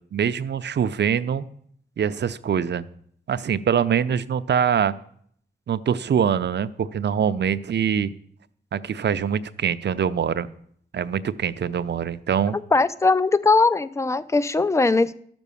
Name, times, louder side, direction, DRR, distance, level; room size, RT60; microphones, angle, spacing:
voice 1, 0.1-1.5 2.0-2.8 3.3-4.9 5.7-8.1 8.7-10.5 10.9-12.6, right 8 dB, 70° right, 0.6 m, -24 dB
voice 2, 12.7-15.1, left 3 dB, 15° left, 0.5 m, -20 dB
13.0 x 6.2 x 6.9 m
wide cardioid pair, 85°, 19 cm